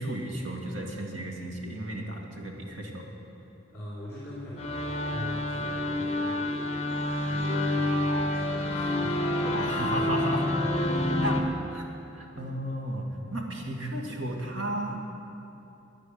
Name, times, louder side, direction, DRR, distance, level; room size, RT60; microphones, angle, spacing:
voice 1, 0.0-3.1 9.4-10.5 11.2-11.8 12.1-15.0, right 1 dB, 75° right, 1 dB, 2.3 m, -34 dB
voice 2, 3.7-9.3, equal, 15° left, -7 dB, 3.1 m, -42 dB
sound 1, 4.6-11.4, left 1 dB, 30° left, 1.3 m, -28 dB
13.0 x 10.5 x 9.7 m, 2.9 s
head